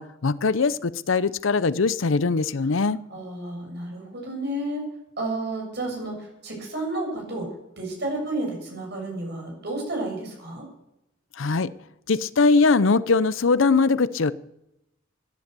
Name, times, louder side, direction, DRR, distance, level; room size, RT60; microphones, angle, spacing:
voice 1, 0.0-3.0 11.4-11.7 12.1-14.3, left 4 dB, 75° left, 16 dB, 0.6 m, -21 dB
voice 2, 3.1-4.9 5.2-10.7, right 2 dB, 55° right, 0 dB, 7.5 m, -31 dB
16.5 x 11.0 x 6.8 m, 0.86 s
head